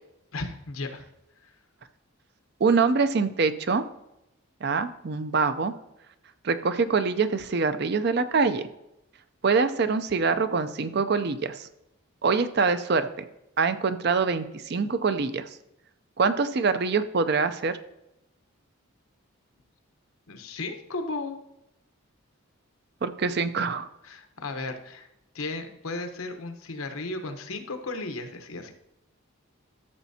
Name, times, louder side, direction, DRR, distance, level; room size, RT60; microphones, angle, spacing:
voice 1, 0.3-1.0 1.4-1.5 20.3-21.4 24.0-25.1 25.3-28.7, left 3 dB, 85° left, 6 dB, 1.0 m, -35 dB
voice 2, 2.6-3.8 4.6-5.7 6.4-8.6 9.4-11.7 12.2-13.1 13.6-15.5 16.2-17.8 23.0-23.9, right 4 dB, 50° right, 12 dB, 0.5 m, -24 dB
13.0 x 7.2 x 2.8 m, 0.85 s
head